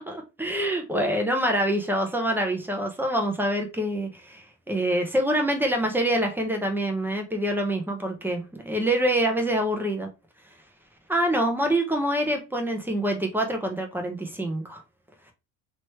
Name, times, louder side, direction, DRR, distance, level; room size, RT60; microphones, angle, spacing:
voice 1, 0.1-10.1 11.1-14.8, right 1 dB, 5° right, 0.8 m, -26 dB
3.1 x 3.0 x 3.0 m
cardioid pair, 125°, 37 cm